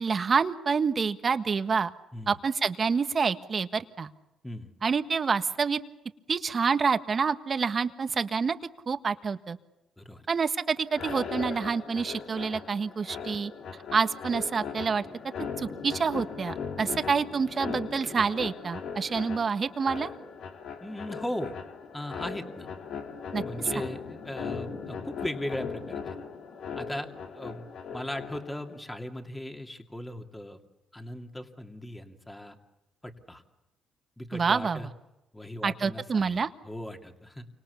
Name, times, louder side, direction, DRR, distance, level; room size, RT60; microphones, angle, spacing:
voice 1, 0.0-1.9 2.3-4.1 4.8-5.8 6.3-8.6 8.9-9.6 10.3-13.5 13.9-15.0 15.6-20.1 23.3-23.4 34.3-34.9 35.6-36.5, right 5 dB, 40° right, 9 dB, 1.5 m, -27 dB
voice 2, 10.0-10.3 20.8-21.5 21.9-22.7 23.4-26.2 26.8-30.6 30.9-32.6 33.0-33.4 34.2-34.9 35.3-37.5, left 1 dB, 10° left, 4 dB, 2.7 m, -38 dB
sound 1, 10.9-28.7, left 6 dB, 70° left, 3.0 m, -38 dB
29.0 x 25.5 x 7.1 m, 0.94 s
cardioid pair, 90°, 0 cm